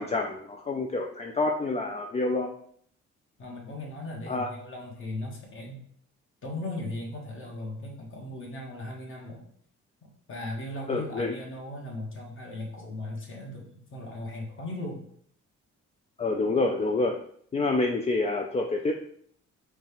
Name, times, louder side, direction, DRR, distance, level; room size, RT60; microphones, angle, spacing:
voice 1, 0.0-2.5 4.3-4.5 10.9-11.3 16.2-17.2 17.5-18.9, left 3 dB, 20° left, 2 dB, 0.4 m, -27 dB
voice 2, 3.4-5.8 6.4-9.5 10.0-15.0, left 1 dB, 45° left, -1 dB, 1.4 m, -38 dB
5.0 x 2.4 x 3.3 m, 0.63 s
cardioid pair, 90°, 30 cm